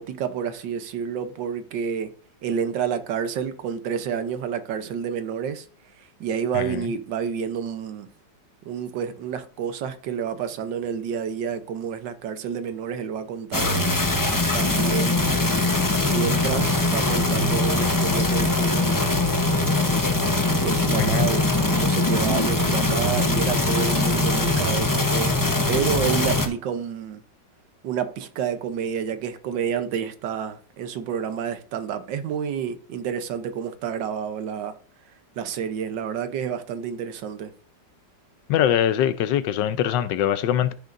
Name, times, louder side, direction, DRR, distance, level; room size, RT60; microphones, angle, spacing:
voice 1, 0.0-2.1 2.4-5.7 6.2-8.1 8.6-13.9 14.5-15.5 16.1-19.1 20.6-21.4 21.7-25.3 25.7-27.2 27.8-34.7 35.4-37.5, right 7 dB, 85° right, 1.5 m, -29 dB
sound 1, 13.5-26.5, left 2 dB, 25° left, 0.4 m, -22 dB
voice 2, 21.0-21.3 38.5-40.7, left 10 dB, 85° left, 1.3 m, -22 dB
13.5 x 6.5 x 2.5 m
omnidirectional pair, 1.9 m